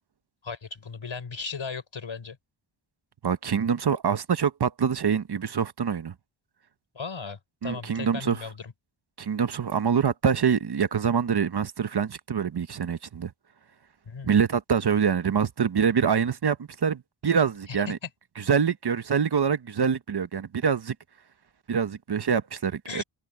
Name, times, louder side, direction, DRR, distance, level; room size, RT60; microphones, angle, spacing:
voice 1, 0.4-2.4 6.9-8.7 14.1-14.4 17.9-18.0 22.9-23.0, left 5 dB, 70° left, 5.1 m, -36 dB
voice 2, 3.2-6.1 7.6-8.4 9.2-13.3 14.2-18.0 18.4-20.9 21.7-23.0, right 7 dB, 50° right, 0.9 m, -25 dB
wide cardioid pair, 110°, 49 cm